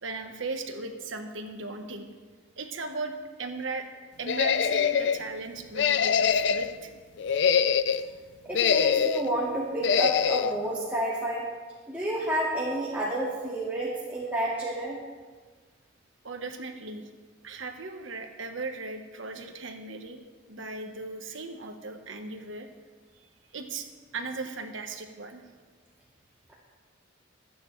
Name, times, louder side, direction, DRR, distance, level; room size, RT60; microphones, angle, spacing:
voice 1, 0.0-2.1 2.6-3.9 4.2-6.9 16.2-17.1 17.4-20.2 20.5-22.7 23.5-23.9 24.1-25.4, right 3 dB, 80° right, 5 dB, 1.3 m, -37 dB
sound 1, 4.3-5.2 5.7-6.7 7.2-8.1 8.5-9.3 9.8-10.5, left 7 dB, 65° left, 0.4 m, -24 dB
voice 2, 8.4-11.5 11.9-15.0, right 1 dB, 10° right, -7 dB, 2.1 m, -30 dB
25.0 x 9.5 x 3.3 m, 1.5 s
head